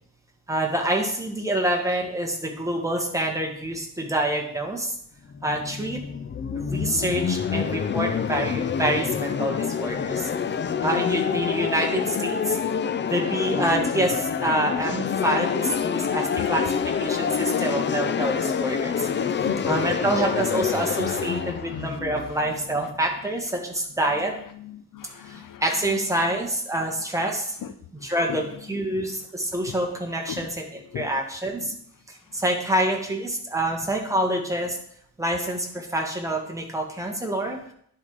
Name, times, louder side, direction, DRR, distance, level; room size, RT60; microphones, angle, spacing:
voice 1, 0.5-4.9 5.4-6.0 6.5-10.3 10.8-12.6 13.0-16.6 17.0-19.3 19.7-24.3 25.3-27.6 27.9-31.7 32.3-34.8 35.2-37.6, right 1 dB, 10° right, 0 dB, 1.5 m, -27 dB
sound 1, 5.3-23.1, left 7 dB, 35° left, 0.4 m, -27 dB
voice 2, 17.1-17.6 17.9-18.2 19.0-19.8 21.5-22.0 24.6-25.6 27.6-27.7 28.3-28.4 28.9-29.0 29.7-29.8 30.3-30.5 30.9-31.1 31.6-31.7, left 8 dB, 65° left, 8 dB, 0.8 m, -38 dB
10.5 x 3.7 x 4.9 m, 0.65 s
wide cardioid pair, 130°, 34 cm